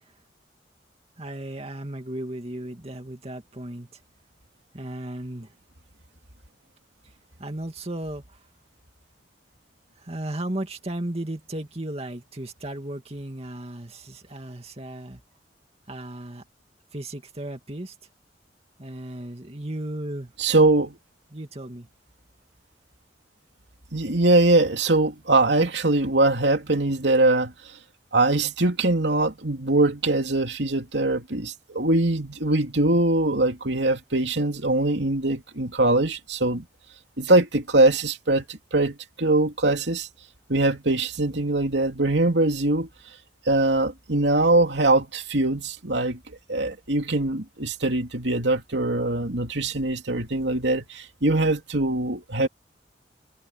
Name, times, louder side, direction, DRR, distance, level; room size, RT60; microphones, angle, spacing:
voice 1, 1.2-4.0 4.7-5.5 7.4-8.4 10.0-15.2 15.9-16.4 16.9-17.9 18.8-20.3 21.3-21.9, right 1 dB, 35° right, 2.4 m, -35 dB
voice 2, 20.4-21.0 23.9-27.5 28.1-36.6 37.2-40.1 40.5-42.9 43.4-52.5, right 2 dB, 80° right, 3.0 m, -22 dB
head